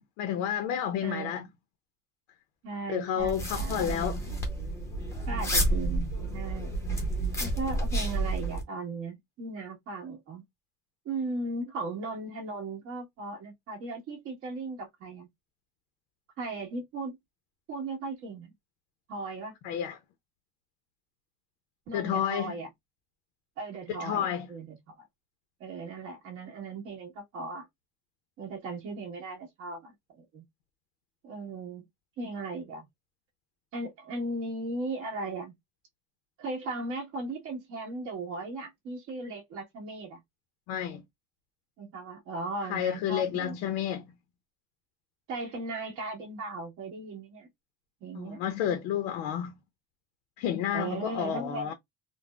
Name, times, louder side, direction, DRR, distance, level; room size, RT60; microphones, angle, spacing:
voice 1, 0.0-1.5 2.9-4.2 19.6-20.0 21.9-22.6 23.9-24.5 40.7-41.0 42.7-44.1 48.1-49.5 50.4-51.7, left 9 dB, 75° left, 0.7 m, -30 dB
voice 2, 1.0-1.5 2.6-3.9 5.3-6.8 7.4-10.4 11.0-15.3 16.4-17.2 17.7-18.5 19.1-19.6 21.9-22.7 23.6-25.0 25.6-27.6 28.4-30.4 31.2-31.8 32.2-32.8 33.7-35.5 36.4-40.2 41.8-43.6 45.3-47.5 48.0-48.4 50.7-51.7, right 3 dB, 50° right, 1.5 m, -37 dB
sound 1, 3.2-8.6, right 1 dB, 10° left, 0.6 m, -30 dB
3.8 x 2.1 x 2.3 m
cardioid pair, 175°, 29 cm